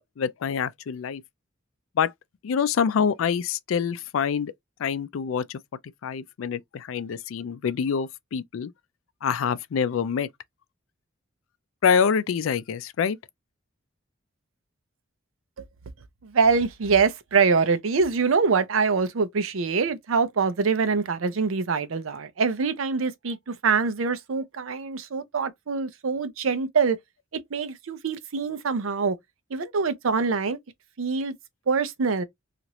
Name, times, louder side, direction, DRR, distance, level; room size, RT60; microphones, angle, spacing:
voice 1, 0.2-1.2 2.0-2.1 2.4-4.5 4.8-5.6 6.0-8.7 9.2-10.3 11.8-13.2, left 6 dB, 85° left, 0.4 m, -26 dB
voice 2, 16.2-27.0 27.5-29.2 29.5-30.6 31.0-31.3 31.7-32.2, right 5 dB, 90° right, 0.5 m, -24 dB
3.0 x 2.5 x 2.8 m
head